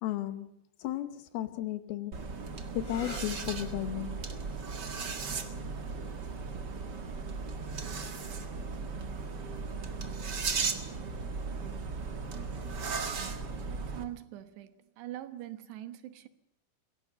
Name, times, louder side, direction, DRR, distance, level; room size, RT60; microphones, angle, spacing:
voice 1, 0.0-2.3 2.7-4.2, left 13 dB, 75° left, 2.8 m, -35 dB
sound 1, 2.1-14.0, right 4 dB, 55° right, 1.1 m, -36 dB
sound 2, 2.7-10.2 11.2-11.7 15.2-15.6, left 3 dB, 25° left, 3.4 m, -54 dB
voice 2, 13.7-16.3, right 13 dB, 80° right, 3.4 m, -43 dB
22.5 x 17.0 x 6.8 m
omnidirectional pair, 4.9 m